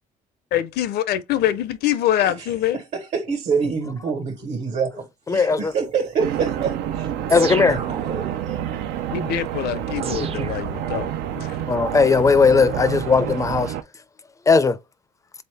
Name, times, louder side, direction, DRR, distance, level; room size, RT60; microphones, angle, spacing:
voice 1, 0.5-2.8 9.1-11.1 11.3-11.6, left 11 dB, 70° left, 0.6 m, -24 dB
voice 2, 2.7-7.1 7.7-8.7 10.1-10.5, right 5 dB, 65° right, 1.4 m, -27 dB
voice 3, 5.3-5.7 7.3-7.8 11.7-13.7 14.5-14.8, left 5 dB, 20° left, 0.4 m, -17 dB
sound 1, 6.2-13.8, right 10 dB, 85° right, 0.5 m, -28 dB
sound 2, 7.3-8.5 10.0-11.3, right 6 dB, 35° right, 0.5 m, -33 dB
3.8 x 2.8 x 3.4 m
cardioid pair, 110°, 17 cm